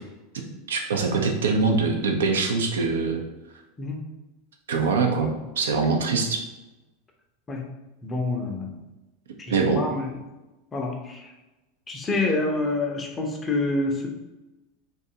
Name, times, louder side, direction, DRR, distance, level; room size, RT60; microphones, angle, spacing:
voice 1, 0.3-3.2 4.7-6.4 9.5-9.8, right 4 dB, 70° right, 3 dB, 0.4 m, -23 dB
voice 2, 8.0-8.7 9.8-10.1 10.7-11.3 11.9-14.1, left 2 dB, 20° left, 1 dB, 0.5 m, -27 dB
2.6 x 2.2 x 2.7 m, 1.0 s
figure-of-eight pair, 80°, 0 cm